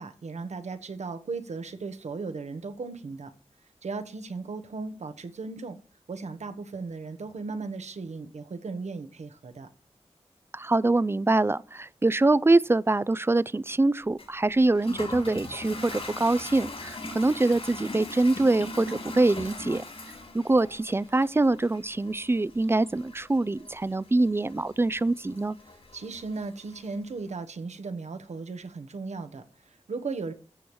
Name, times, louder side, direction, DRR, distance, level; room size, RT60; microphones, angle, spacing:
voice 1, 0.0-3.3 3.8-5.8 6.1-9.7 25.7-30.3, right 4 dB, 85° right, 1.1 m, -36 dB
voice 2, 10.5-19.8 20.3-25.6, right 2 dB, 20° right, 0.4 m, -24 dB
Toilet flush, 14.2-27.0, left 2 dB, 60° left, 4.0 m, -41 dB
14.5 x 7.1 x 3.1 m
cardioid pair, 55°, 11 cm